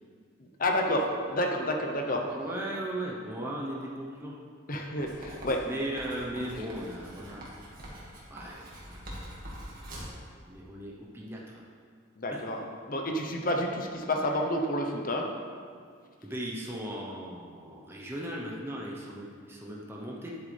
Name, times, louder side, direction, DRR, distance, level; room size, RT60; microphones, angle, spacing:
voice 1, 0.4-2.3 4.7-5.7 12.2-12.6 12.9-15.3, left 1 dB, 45° left, 2 dB, 0.9 m, -29 dB
voice 2, 2.3-4.3 5.6-7.5 8.3-9.0 9.5-9.9 10.4-11.6 12.3-12.5 14.3-14.4 16.2-20.3, right 1 dB, 10° right, -3 dB, 0.9 m, -37 dB
Writing, 5.0-10.2, equal, 45° right, 2.0 m, -44 dB
11.0 x 8.0 x 3.4 m, 2.1 s
head